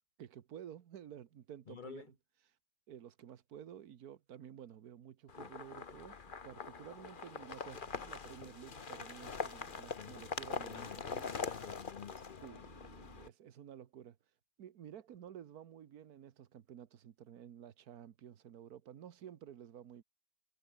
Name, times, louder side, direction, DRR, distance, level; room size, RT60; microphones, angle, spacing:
voice 1, 0.2-2.1 2.9-11.3 12.4-14.2 14.6-20.0, right 10 dB, 80° right, 1.6 m, -52 dB
voice 2, 1.7-2.1 10.0-10.2 10.7-12.7, left 8 dB, 75° left, 0.4 m, -51 dB
sound 1, 5.3-13.3, left 5 dB, 35° left, 1.3 m, -43 dB
omnidirectional pair, 1.6 m